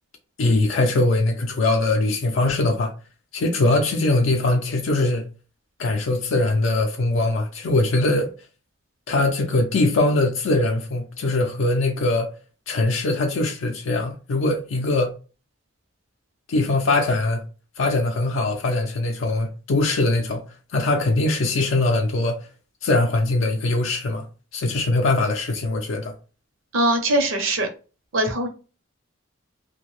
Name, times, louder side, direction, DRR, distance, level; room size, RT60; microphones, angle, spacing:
voice 1, 0.4-2.9 3.3-5.2 5.8-8.3 9.1-12.3 12.7-15.1 16.5-17.4 17.8-20.4 20.7-22.4 22.8-24.3 24.5-26.1, left 2 dB, 70° left, 0.4 m, -21 dB
voice 2, 26.7-27.7 28.1-28.5, right 1 dB, 75° right, 0.6 m, -21 dB
2.5 x 2.1 x 3.0 m
head